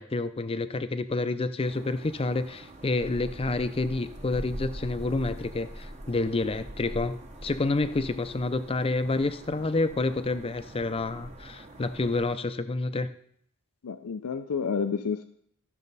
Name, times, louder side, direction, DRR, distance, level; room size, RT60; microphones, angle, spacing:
voice 1, 0.0-7.2 7.4-13.1, left 2 dB, 25° left, 11 dB, 0.5 m, -29 dB
sound 1, 1.6-12.4, right 1 dB, 30° right, 0.9 m, -43 dB
voice 2, 13.8-15.2, left 5 dB, 75° left, 9 dB, 0.5 m, -30 dB
13.5 x 6.4 x 4.1 m, 0.67 s
head